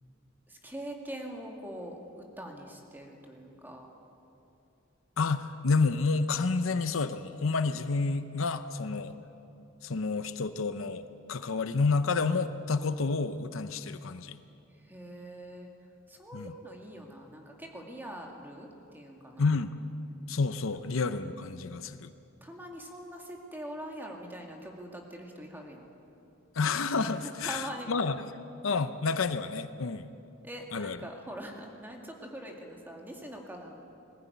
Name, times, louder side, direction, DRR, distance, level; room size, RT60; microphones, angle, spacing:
voice 1, 0.5-3.9 14.8-15.7 16.1-19.5 22.4-25.8 27.2-27.9 30.4-33.8, right 1 dB, 10° right, 1 dB, 2.2 m, -43 dB
voice 2, 5.2-9.2 9.8-14.4 16.3-16.5 19.4-19.7 20.3-22.1 26.6-28.2 28.6-30.1 30.7-31.0, left 4 dB, 75° left, 11 dB, 0.7 m, -29 dB
20.5 x 14.5 x 9.4 m, 2.7 s
head